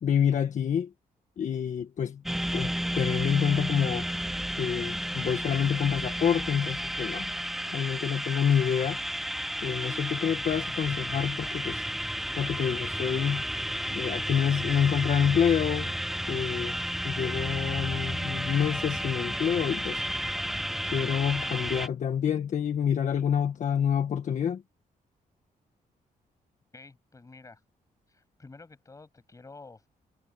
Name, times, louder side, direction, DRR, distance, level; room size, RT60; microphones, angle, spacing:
voice 1, 0.0-0.9 1.4-2.2 2.5-4.1 4.6-7.3 7.7-9.0 9.6-11.8 12.4-13.4 13.9-15.9 16.3-16.8 17.0-20.0 20.8-24.6, left 8 dB, 55° left, 1.5 m, -27 dB
sound 1, 2.3-21.9, equal, ahead, 0.8 m, -32 dB
voice 2, 26.7-27.6 28.1-29.9, left 3 dB, 20° left, 6.9 m, -50 dB
wide cardioid pair, 145°, 15 cm